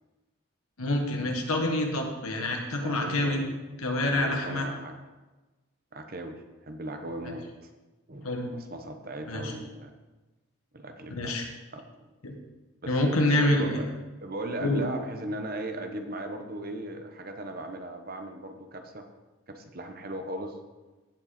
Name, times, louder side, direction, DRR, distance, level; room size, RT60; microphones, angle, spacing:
voice 1, 0.8-3.4 3.8-4.7 8.2-8.5 9.3-9.5 11.1-11.4 12.2-12.4 12.9-13.8 14.6-14.8, left 1 dB, 85° left, 2 dB, 1.7 m, -27 dB
voice 2, 2.8-3.4 4.0-4.9 5.9-7.4 8.1-9.9 10.7-11.4 11.7-12.1 12.8-13.9 14.2-19.1 19.5-20.6, right 1 dB, 45° right, 6 dB, 0.9 m, -37 dB
16.0 x 5.5 x 4.3 m, 1.2 s
head